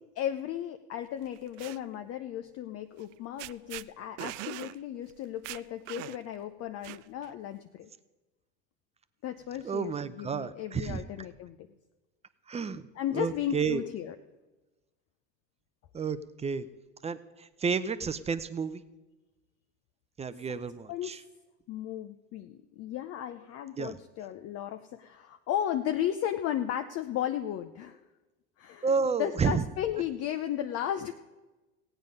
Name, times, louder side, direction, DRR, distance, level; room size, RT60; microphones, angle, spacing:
voice 1, 0.2-7.9 9.2-11.6 13.0-14.1 20.5-20.6 20.9-21.2 21.7-28.0 28.6-28.9 29.2-31.1, left 11 dB, 45° left, 8 dB, 0.6 m, -35 dB
sound 1, 1.3-1.8 3.0-3.1 3.4-3.9 4.2-4.8 5.1-5.2 5.4-6.3 6.8-7.3, right 18 dB, 75° right, 0.5 m, -41 dB
voice 2, 9.6-11.0 12.5-12.8 13.1-13.8 15.9-16.7 17.0-18.8 20.2-21.2 23.8-24.0 28.8-29.6, right 5 dB, 20° right, 14 dB, 0.6 m, -31 dB
15.5 x 9.0 x 5.3 m, 1.1 s
hypercardioid pair, 90°, 36 cm